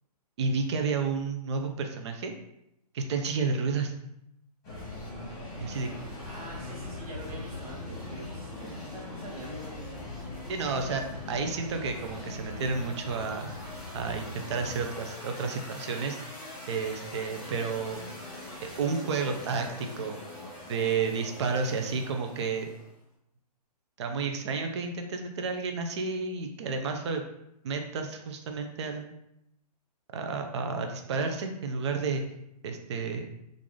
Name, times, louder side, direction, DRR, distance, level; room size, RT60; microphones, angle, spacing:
voice 1, 0.4-2.3 2.9-3.9 5.6-5.9 10.5-13.5 13.9-16.2 16.7-18.0 18.8-20.2 20.7-22.7 24.0-27.2 27.6-29.2 30.1-32.2 32.6-33.3, right 4 dB, 45° right, 4 dB, 0.4 m, -31 dB
sound 1, 4.6-22.9, left 2 dB, 15° left, 1.1 m, -41 dB
voice 2, 6.2-9.9, right 1 dB, 60° right, -1 dB, 1.2 m, -45 dB
3.7 x 2.5 x 3.1 m, 0.81 s
hypercardioid pair, 165°, 21 cm